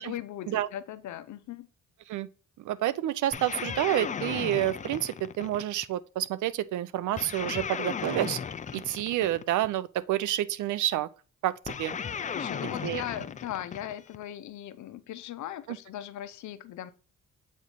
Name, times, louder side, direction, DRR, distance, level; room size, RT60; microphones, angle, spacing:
voice 1, 0.0-1.7 12.3-16.9, left 11 dB, 70° left, 0.7 m, -39 dB
voice 2, 2.6-8.4 8.7-11.1 11.4-12.0 12.6-13.0 15.7-15.8, right 13 dB, 75° right, 0.6 m, -29 dB
sound 1, 3.3-5.9 7.2-9.7 11.7-14.2, left 7 dB, 25° left, 0.4 m, -36 dB
8.1 x 3.2 x 4.0 m
cardioid pair, 90°, 30 cm